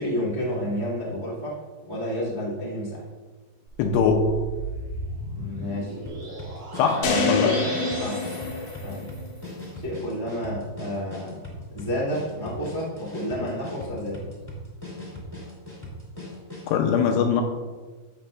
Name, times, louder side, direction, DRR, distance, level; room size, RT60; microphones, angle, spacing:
voice 1, 0.0-1.6 1.9-3.0 5.3-6.0 7.0-7.6 8.0-8.2 8.8-9.2 9.7-11.4 11.7-14.2, equal, 50° right, -7 dB, 0.5 m, -30 dB
sound 1, 3.7-9.5, right 2 dB, 75° right, 5.0 m, -37 dB
voice 2, 3.8-4.4 6.8-7.0 7.3-7.5 13.4-13.5 16.7-17.4, left 6 dB, 80° left, 3 dB, 2.7 m, -21 dB
sound 2, 6.0-16.8, left 1 dB, 10° left, 1.6 m, -39 dB
sound 3, 7.0-9.3, left 4 dB, 65° left, 2.1 m, -26 dB
13.5 x 8.3 x 2.5 m, 1.4 s
omnidirectional pair, 5.1 m